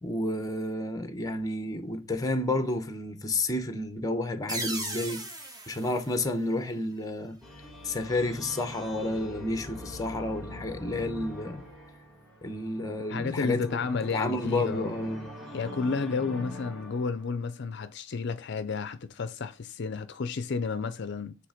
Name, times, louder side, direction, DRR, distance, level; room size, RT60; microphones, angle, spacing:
voice 1, 0.0-5.2 5.7-7.4 7.8-11.6 12.4-13.8 14.1-15.3, left 2 dB, 15° left, 0.8 m, -30 dB
sound 1, 4.5-7.1, right 2 dB, 20° right, 1.1 m, -38 dB
sound 2, 7.4-17.5, equal, ahead, 1.7 m, -43 dB
voice 2, 13.1-14.9 15.5-21.4, left 4 dB, 55° left, 0.5 m, -31 dB
7.7 x 3.3 x 4.9 m
head